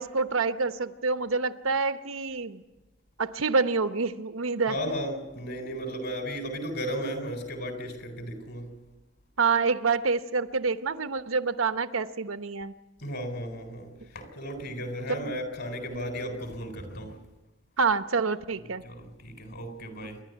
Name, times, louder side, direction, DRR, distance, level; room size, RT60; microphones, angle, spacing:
voice 1, 0.0-2.6 3.2-4.7 9.4-12.7 15.2-15.3 15.9-16.0 17.8-18.8, right 4 dB, 80° right, 11 dB, 0.9 m, -27 dB
voice 2, 4.7-8.8 13.0-17.2 18.5-20.2, equal, 55° left, 6 dB, 4.0 m, -35 dB
27.5 x 11.5 x 9.2 m, 1.1 s
head